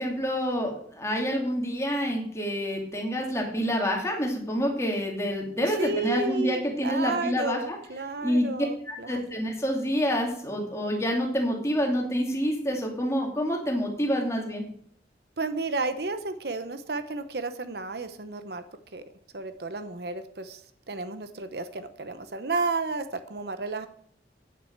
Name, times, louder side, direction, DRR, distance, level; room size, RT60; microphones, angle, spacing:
voice 1, 0.0-7.8 8.2-8.5 8.9-14.7, equal, 15° left, 0 dB, 2.7 m, -27 dB
voice 2, 5.8-9.2 15.4-18.6 18.9-19.0 19.3-20.6 20.9-23.0 23.3-23.9, right 3 dB, 65° right, 10 dB, 0.9 m, -32 dB
9.5 x 7.6 x 7.3 m, 0.63 s
head